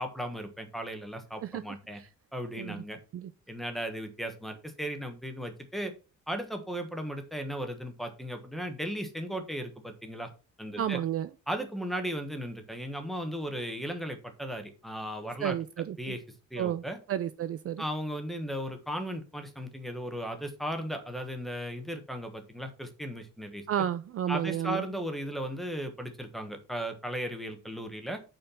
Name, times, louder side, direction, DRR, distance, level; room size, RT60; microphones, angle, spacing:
voice 1, 0.0-2.0 2.3-3.0 3.5-5.9 6.3-10.3 10.6-11.0 11.5-15.6 16.0-16.2 16.5-17.0 17.8-23.6 24.3-28.2, equal, ahead, 1.3 m, -36 dB
voice 2, 10.8-11.3 15.4-16.2 16.6-16.8 17.1-17.8 23.7-24.8, right 10 dB, 50° right, 0.5 m, -31 dB
8.6 x 4.5 x 5.6 m
cardioid pair, 165°, 31 cm